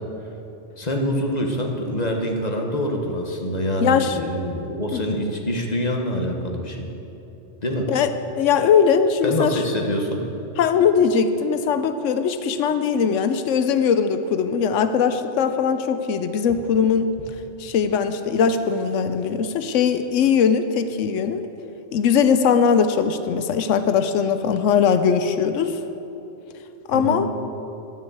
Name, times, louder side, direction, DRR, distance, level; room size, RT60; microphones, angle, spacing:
voice 1, 0.8-6.9 7.6-7.9 9.2-10.2 26.9-27.2, equal, 35° left, 2 dB, 1.3 m, -25 dB
voice 2, 3.8-4.2 4.9-5.2 7.9-8.1 8.4-9.6 10.6-17.1 17.6-21.4 21.9-25.8 26.9-27.3, left 6 dB, 85° left, 9 dB, 1.0 m, -20 dB
13.0 x 7.3 x 8.3 m, 2.9 s
omnidirectional pair, 1.3 m